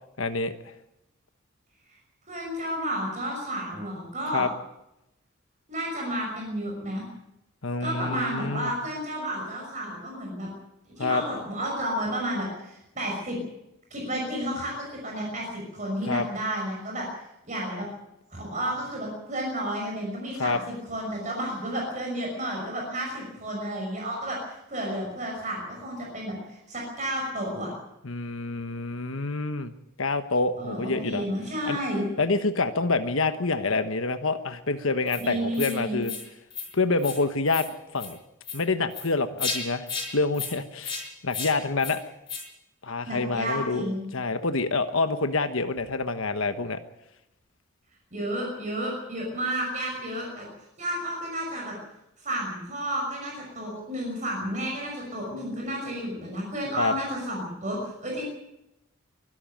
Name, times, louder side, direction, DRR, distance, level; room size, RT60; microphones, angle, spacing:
voice 1, 0.2-0.7 4.3-4.5 7.6-8.7 11.0-11.2 16.0-16.3 20.4-20.6 28.0-29.7 30.0-31.3 31.7-31.8 32.2-36.1 36.7-37.7 37.9-38.2 38.5-39.9 40.1-42.0 42.8-43.8 44.1-46.8 56.8-56.9, left 3 dB, 70° left, 9 dB, 1.2 m, -27 dB
voice 2, 2.3-4.4 5.7-7.1 7.8-10.5 11.0-13.4 13.9-17.1 17.5-17.9 18.3-27.7 30.6-32.1 35.2-36.0 43.1-44.0 48.1-50.5 50.8-51.7 52.2-58.2, right 1 dB, 35° right, -1 dB, 6.0 m, -31 dB
sound 1, 35.1-35.2 35.5-35.7 36.0-36.2 36.5-36.7 37.0-37.2 37.5-37.7 38.0-38.1 38.4-38.6 38.9-39.1 39.4-39.6 39.9-40.1 40.3-40.5 40.8-41.0 41.3-41.5 41.8-41.9 42.3-42.4, left 5 dB, 20° left, 5.8 m, -33 dB
24.0 x 12.5 x 9.1 m, 0.87 s
head